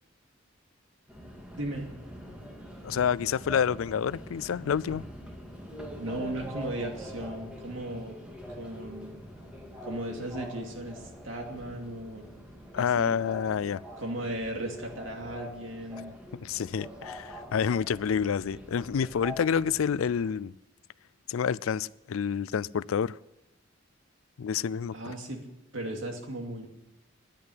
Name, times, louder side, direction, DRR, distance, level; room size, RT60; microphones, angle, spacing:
Subway metro underground, 1.1-20.3, equal, 5° right, 2.1 m, -44 dB
voice 1, 1.6-1.9 6.0-8.2 8.5-9.2 9.8-12.3 12.7-13.2 14.0-16.1 24.9-25.4 25.7-26.7, right 1 dB, 65° right, 2.5 m, -36 dB
voice 2, 2.8-5.0 12.7-13.8 16.3-20.5 21.3-23.2 24.4-25.1, left 7 dB, 80° left, 0.4 m, -28 dB
10.5 x 9.5 x 9.9 m
head